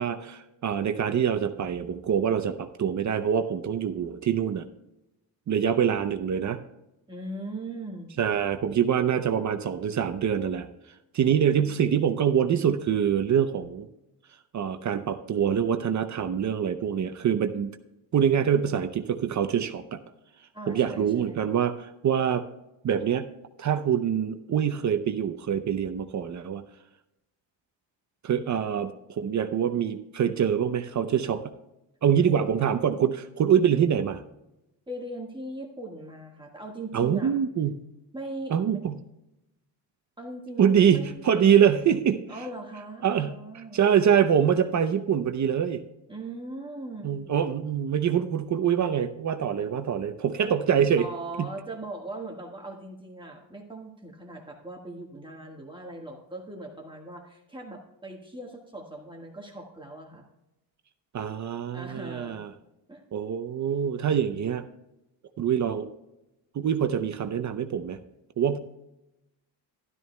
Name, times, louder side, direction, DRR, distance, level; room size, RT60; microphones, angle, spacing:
voice 1, 0.0-4.7 5.5-6.6 8.2-10.7 11.1-13.9 14.5-17.8 18.1-20.0 20.7-22.4 22.8-23.3 23.6-26.6 28.2-31.4 32.0-34.2 36.9-37.8 38.5-39.0 40.6-42.2 43.0-43.4 43.7-45.8 47.0-51.1 51.4-51.5 61.1-62.5 63.1-64.7 65.4-65.9 66.5-68.0 68.4-68.6, right 8 dB, 40° right, 9 dB, 0.6 m, -25 dB
voice 2, 7.1-8.2 20.5-21.5 32.2-32.6 34.9-37.3 38.1-38.6 40.2-41.2 42.3-43.8 46.1-47.2 50.4-50.5 51.0-60.3 61.7-62.4 62.9-63.0, right 2 dB, 10° right, 0 dB, 1.5 m, -40 dB
12.5 x 12.5 x 2.2 m, 0.91 s
cardioid pair, 115°, 43 cm